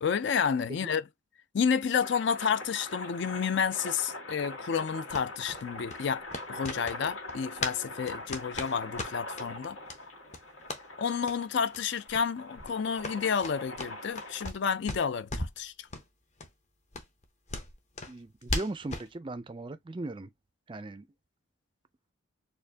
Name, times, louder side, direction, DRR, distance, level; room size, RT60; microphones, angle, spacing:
voice 1, 0.0-1.0 1.5-6.2 6.5-9.8 11.0-15.9, left 6 dB, 55° left, 0.4 m, -30 dB
sound 1, 2.0-14.5, left 2 dB, 85° left, 1.6 m, -43 dB
sound 2, 5.1-7.8 8.0-9.5 9.9-10.0 10.3-10.8 11.2-11.4 11.7-11.8 12.1-12.3 12.6-14.6 14.9-15.6 15.9-16.1 16.4-16.5 16.9-19.1, left 2 dB, 35° left, 0.8 m, -37 dB
voice 2, 18.1-20.3 20.7-21.1, right 2 dB, 25° right, 0.4 m, -38 dB
4.4 x 2.5 x 2.7 m
head